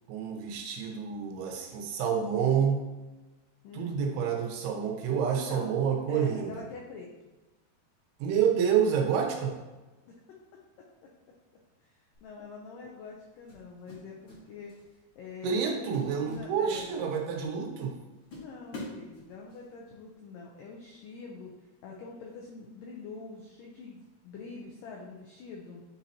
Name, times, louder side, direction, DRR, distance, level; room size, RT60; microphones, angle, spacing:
voice 1, 0.1-2.8 3.7-6.6 8.2-9.5 15.4-17.9, right 7 dB, 85° right, 1 dB, 2.8 m, -28 dB
voice 2, 3.6-4.0 5.3-5.7 6.1-7.1 10.0-10.2 11.8-14.7 15.2-16.9 18.3-21.5 21.8-25.8, left 4 dB, 85° left, -1 dB, 1.9 m, -45 dB
sound 1, 12.1-12.4 13.5-14.4 14.7-15.0 15.5-15.6 15.9-17.4 17.8-17.9 18.3-19.6, left 2 dB, 55° left, 1.4 m, -45 dB
9.7 x 4.1 x 2.9 m, 1.1 s
omnidirectional pair, 4.7 m